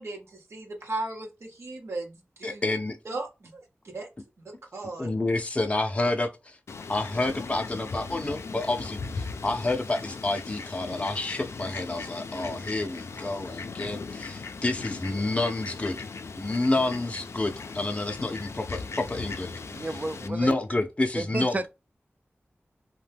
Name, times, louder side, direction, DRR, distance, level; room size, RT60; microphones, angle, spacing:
voice 1, 0.0-2.6 3.0-4.1 4.7-5.1, right 2 dB, 80° right, 0.8 m, -36 dB
voice 2, 2.4-3.0 5.0-6.3 6.9-16.0 16.3-19.9 20.2-21.7, left 2 dB, 25° left, 0.5 m, -29 dB
Fowl, 6.7-20.3, left 4 dB, 90° left, 0.3 m, -38 dB
voice 3, 19.7-20.5 21.1-21.7, right 2 dB, 35° right, 0.3 m, -31 dB
2.7 x 2.1 x 3.3 m
wide cardioid pair, 75°, 5 cm